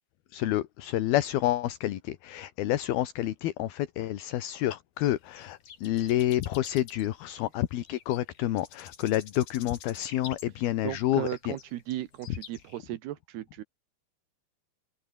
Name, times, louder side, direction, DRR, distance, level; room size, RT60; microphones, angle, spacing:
voice 1, 0.3-11.5, left 14 dB, 75° left, 3.2 m, -29 dB
sound 1, 5.0-12.8, left 8 dB, 55° left, 3.9 m, -49 dB
voice 2, 10.8-13.6, right 14 dB, 85° right, 3.3 m, -36 dB
open air
omnidirectional pair, 4.6 m